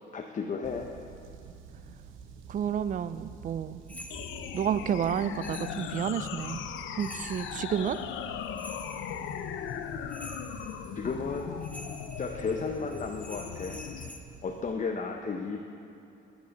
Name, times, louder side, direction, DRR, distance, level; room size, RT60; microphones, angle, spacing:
voice 1, 0.1-0.9 11.0-11.5 12.2-13.8 14.4-15.6, left 4 dB, 40° left, 2 dB, 0.7 m, -33 dB
sound 1, 0.6-14.7, right 6 dB, 90° right, 0.8 m, -49 dB
voice 2, 2.5-3.8 4.5-6.6 7.0-8.0, right 8 dB, 40° right, 15 dB, 0.4 m, -30 dB
sound 2, 3.9-14.2, left 1 dB, 5° left, 1.0 m, -49 dB
sound 3, 4.1-14.1, left 9 dB, 75° left, 0.6 m, -38 dB
11.5 x 8.2 x 5.3 m, 2.7 s
cardioid pair, 90°, 20 cm